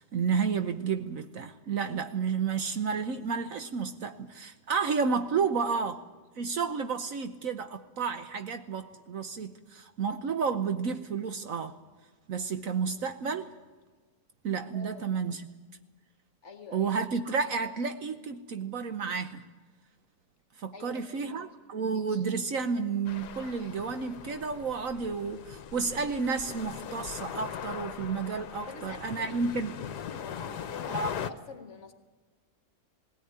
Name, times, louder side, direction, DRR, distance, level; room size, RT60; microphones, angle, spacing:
voice 1, 0.0-6.0 6.4-11.8 12.3-13.5 14.4-15.4 16.7-19.5 20.6-29.8 30.9-31.1, right 5 dB, 60° right, 1.1 m, -31 dB
voice 2, 14.7-15.0 16.4-16.9 20.7-21.4 28.7-29.8 30.2-31.9, left 4 dB, 45° left, 1.7 m, -47 dB
sound 1, 23.1-31.3, left 8 dB, 75° left, 1.5 m, -40 dB
18.5 x 17.0 x 9.5 m
omnidirectional pair, 1.8 m